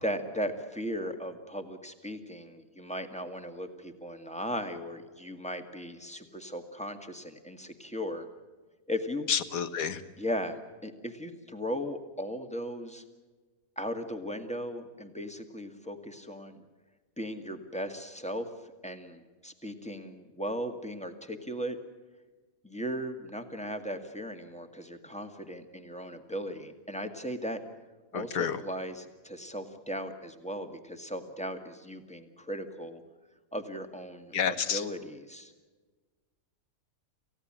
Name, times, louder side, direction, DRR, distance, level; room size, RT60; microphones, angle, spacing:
voice 1, 0.0-8.3 8.9-9.3 10.2-13.0 13.8-16.6 17.2-21.8 22.6-27.6 28.1-33.0 33.5-34.3 34.7-35.5, equal, 5° left, 6 dB, 1.9 m, -37 dB
voice 2, 9.3-10.0 28.1-28.6 34.3-34.8, left 7 dB, 75° left, 11 dB, 1.6 m, -29 dB
28.5 x 16.0 x 8.9 m, 1.3 s
omnidirectional pair, 1.5 m